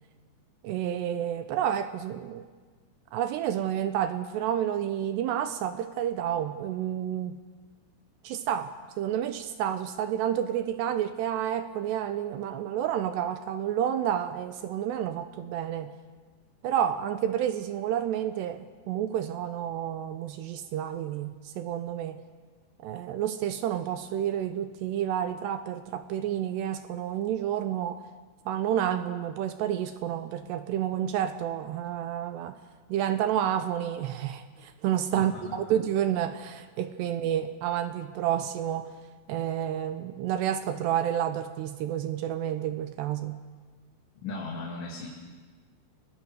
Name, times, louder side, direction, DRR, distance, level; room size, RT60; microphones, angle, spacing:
voice 1, 0.6-2.5 3.1-7.4 8.2-15.9 16.6-22.2 22.8-28.0 28.5-32.6 32.9-38.9 39.3-43.4, right 10 dB, 80° right, 10 dB, 2.6 m, -30 dB
voice 2, 35.2-35.6 44.2-45.1, left 3 dB, 70° left, -3 dB, 5.2 m, -37 dB
29.5 x 21.5 x 6.6 m, 1.4 s
omnidirectional pair, 5.7 m